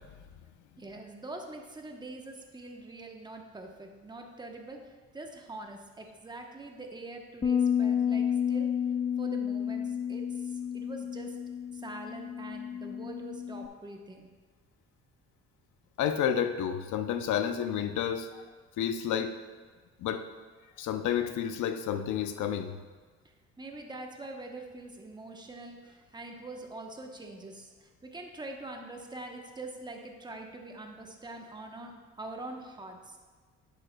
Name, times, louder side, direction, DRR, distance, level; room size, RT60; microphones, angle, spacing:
voice 1, 0.8-8.7 9.2-11.4 11.7-14.3 23.2-33.2, right 2 dB, 15° right, 2 dB, 1.0 m, -44 dB
Bass guitar, 7.4-13.7, left 8 dB, 25° left, 0.3 m, -31 dB
voice 2, 16.0-18.3 18.8-19.4 20.0-20.2 20.8-22.8, left 9 dB, 80° left, 9 dB, 0.6 m, -30 dB
10.5 x 6.8 x 2.3 m, 1.5 s
cardioid pair, 90°, 30 cm